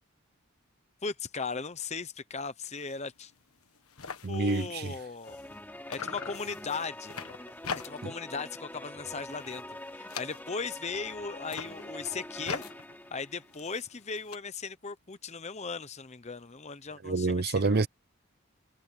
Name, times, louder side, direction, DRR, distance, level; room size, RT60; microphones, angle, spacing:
voice 1, 1.0-3.3 4.3-5.4 5.9-7.2 7.7-9.6 9.9-12.6 13.1-17.8, left 4 dB, 30° left, 0.8 m, -37 dB
sound 1, 2.7-3.0 3.3-3.4 3.6-5.6 5.9-8.2 8.6-8.9 9.3-10.8 11.3-14.4, left 5 dB, 75° left, 1.5 m, -42 dB
voice 2, 4.2-5.0 8.0-8.1 17.0-17.9, right 3 dB, 45° right, 0.7 m, -27 dB
sound 2, 5.2-13.8, left 1 dB, 10° left, 2.9 m, -45 dB
head